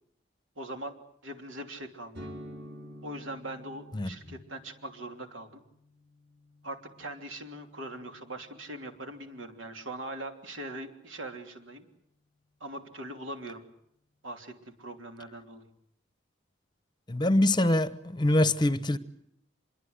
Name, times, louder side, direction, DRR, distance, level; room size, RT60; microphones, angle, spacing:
voice 1, 0.6-0.9 1.2-2.3 3.0-5.6 6.6-11.8 12.6-13.6 14.2-14.5 14.8-15.7, right 1 dB, 75° right, 3.1 m, -41 dB
sound 1, 2.1-9.8, equal, 50° right, 4.1 m, -50 dB
voice 2, 17.1-19.0, left 1 dB, 20° left, 0.9 m, -24 dB
25.5 x 22.5 x 8.1 m
head